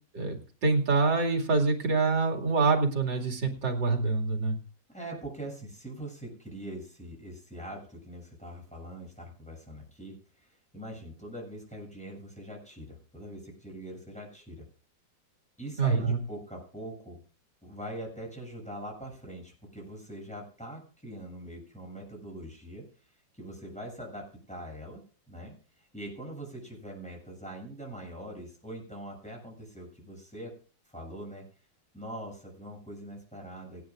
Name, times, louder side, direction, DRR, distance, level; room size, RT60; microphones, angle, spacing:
voice 1, 0.1-4.6 15.8-16.2, right 4 dB, 70° right, 1 dB, 3.1 m, -26 dB
voice 2, 4.9-14.7 15.6-17.2 17.6-22.9 23.3-25.0 25.3-25.5 25.8-30.5 30.9-31.5 31.9-33.8, right 1 dB, 5° left, -1 dB, 7.3 m, -42 dB
25.5 x 10.0 x 2.5 m, 0.39 s
omnidirectional pair, 2.0 m